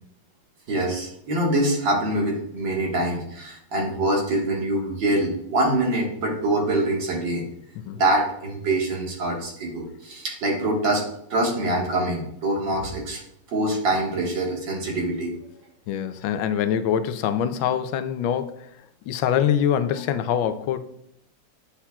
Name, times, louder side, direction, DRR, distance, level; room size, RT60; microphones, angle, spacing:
voice 1, 0.7-7.4 7.9-11.0 11.3-13.2 13.5-15.3, right 1 dB, 70° right, 2.4 m, -24 dB
voice 2, 15.9-18.7 19.1-20.8, left 9 dB, 90° left, 1.4 m, -24 dB
9.9 x 5.7 x 2.3 m
omnidirectional pair, 2.1 m